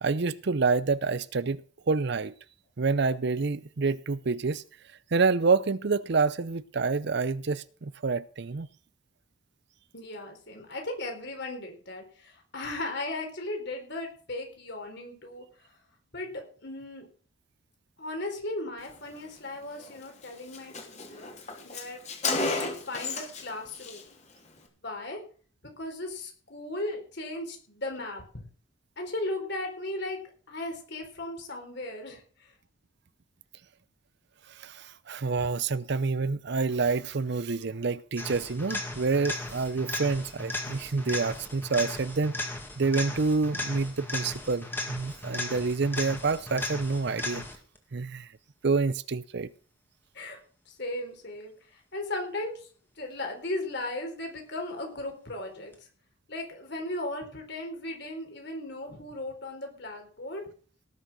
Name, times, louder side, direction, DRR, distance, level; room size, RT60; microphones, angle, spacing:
voice 1, 0.0-2.3 2.8-4.6 5.1-8.7 34.5-42.3 42.8-47.4 47.9-48.3 48.6-49.5, right 4 dB, 55° right, 0.6 m, -28 dB
voice 2, 9.9-15.5 16.1-17.1 18.0-21.3 21.6-24.0 24.8-25.2 25.6-28.5 29.0-30.2 30.5-32.5 50.1-50.4 50.7-52.7 53.0-55.7 56.3-60.5, left 2 dB, 55° left, 4.2 m, -37 dB
Car, 19.8-20.0 20.2-20.3 20.5-23.5 23.7-24.0, left 3 dB, 35° left, 2.8 m, -32 dB
sound 1, 38.2-47.8 55.7-55.8, left 2 dB, 10° left, 2.0 m, -36 dB
18.5 x 6.5 x 6.2 m
head